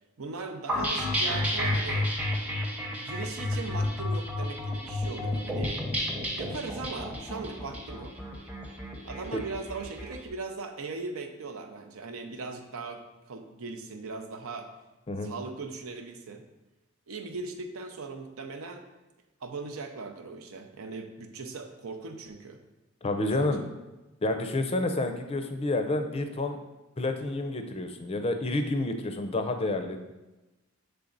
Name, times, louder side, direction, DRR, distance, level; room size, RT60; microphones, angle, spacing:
voice 1, 0.2-2.1 2.9-5.8 6.3-8.1 9.0-14.7 15.2-16.4 17.1-18.8 19.4-22.6 23.2-23.7, right 4 dB, 80° right, 5 dB, 0.6 m, -39 dB
sound 1, 0.7-10.1, left 1 dB, 5° right, 0.7 m, -31 dB
voice 2, 23.0-23.6 24.2-26.6 27.0-30.0, left 2 dB, 30° left, 6 dB, 0.5 m, -29 dB
7.2 x 3.4 x 3.9 m, 1.1 s
head